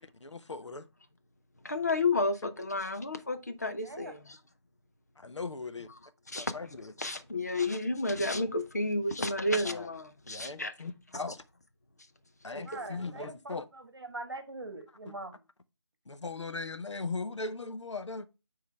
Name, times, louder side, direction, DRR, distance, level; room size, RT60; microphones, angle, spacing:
voice 1, 0.2-0.8 5.2-5.9 6.3-6.9 9.6-9.9 10.3-11.4 12.4-13.6 16.1-18.3, left 3 dB, 80° left, 1.0 m, -39 dB
voice 2, 1.6-4.4 6.3-6.5 7.0-10.7 12.7-12.8, left 2 dB, 35° left, 0.7 m, -31 dB
voice 3, 3.8-4.2 12.6-15.4, right 2 dB, 55° right, 1.5 m, -43 dB
9.7 x 3.8 x 3.3 m
figure-of-eight pair, 175°, 15 cm